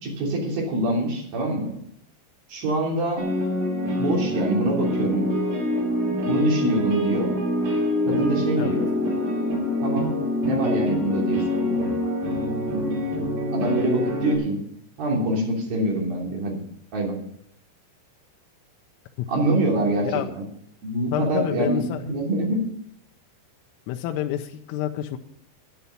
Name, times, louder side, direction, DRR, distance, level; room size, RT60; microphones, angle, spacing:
voice 1, 0.0-1.7 2.5-3.2 4.0-5.3 6.3-7.3 8.1-8.9 9.8-10.1 10.4-11.9 13.5-14.6 15.0-16.6 16.9-17.2 19.3-20.4 20.8-22.6, right 2 dB, 50° right, -2 dB, 4.5 m, -25 dB
sound 1, 3.2-14.4, left 1 dB, 75° right, 6.1 m, -25 dB
voice 2, 21.1-22.0 23.9-25.2, left 12 dB, 90° left, 4 dB, 3.4 m, -28 dB
11.0 x 10.5 x 5.6 m, 0.69 s
omnidirectional pair, 5.8 m